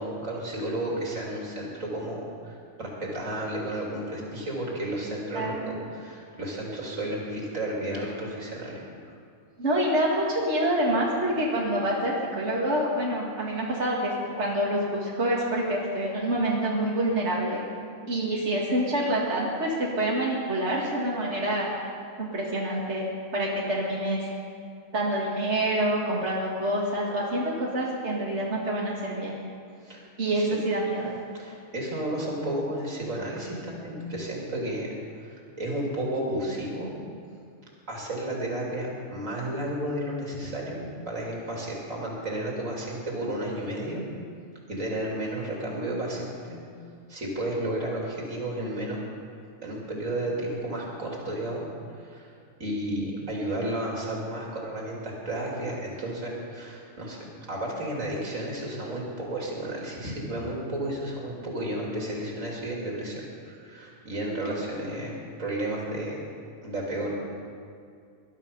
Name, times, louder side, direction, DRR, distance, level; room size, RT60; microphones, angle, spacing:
voice 1, 0.0-5.5 5.9-8.8 29.8-30.0 30.3-30.5 31.4-34.9 35.2-36.9 37.9-44.0 44.7-46.6 47.1-49.0 49.6-51.7 52.0-52.3 52.6-66.2 66.6-67.1, right 1 dB, 85° right, -3 dB, 3.5 m, -32 dB
voice 2, 5.3-5.8 9.6-17.7 18.1-21.7 22.2-23.0 23.3-24.3 24.9-29.4 30.2-31.1, right 1 dB, 60° right, -4 dB, 2.4 m, -27 dB
20.5 x 12.0 x 5.5 m, 2.3 s
omnidirectional pair, 1.3 m